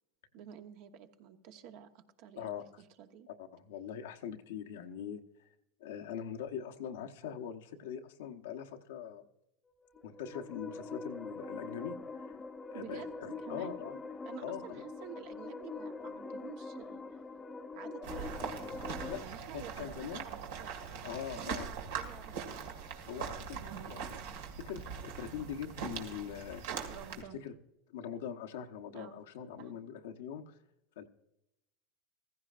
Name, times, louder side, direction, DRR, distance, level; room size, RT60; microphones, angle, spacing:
voice 1, 0.3-3.3 12.7-13.1 13.4-13.7 14.2-17.0 17.7-22.7 26.9-27.4 28.9-29.2 29.6-29.7, right 9 dB, 65° right, 6 dB, 1.1 m, -51 dB
voice 2, 3.4-5.2 5.8-9.2 10.0-12.3 12.7-14.0 14.4-14.8 19.0-19.2 19.5-20.2 21.0-21.7 23.1-24.2 24.6-26.6 27.4-27.5 27.9-30.5 31.0-31.1, left 8 dB, 85° left, 5 dB, 1.0 m, -42 dB
sound 1, 9.8-19.2, left 3 dB, 20° left, 0.7 m, -44 dB
sound 2, 18.0-27.2, right 6 dB, 80° right, 1.9 m, -41 dB
15.5 x 15.0 x 2.5 m, 0.87 s
supercardioid pair, 110°, 0 cm